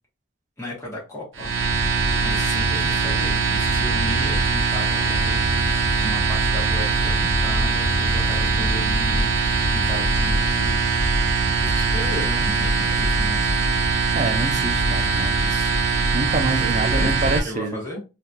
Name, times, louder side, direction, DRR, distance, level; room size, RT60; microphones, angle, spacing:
voice 1, 0.6-5.4 6.0-10.8 11.6-13.5 16.6-18.0, left 1 dB, 15° left, -5 dB, 1.2 m, -35 dB
sound 1, 1.3-17.4, right 3 dB, 70° right, 0.8 m, -21 dB
voice 2, 14.1-17.8, right 2 dB, 35° right, 6 dB, 0.5 m, -27 dB
3.7 x 2.8 x 2.3 m, 0.29 s
head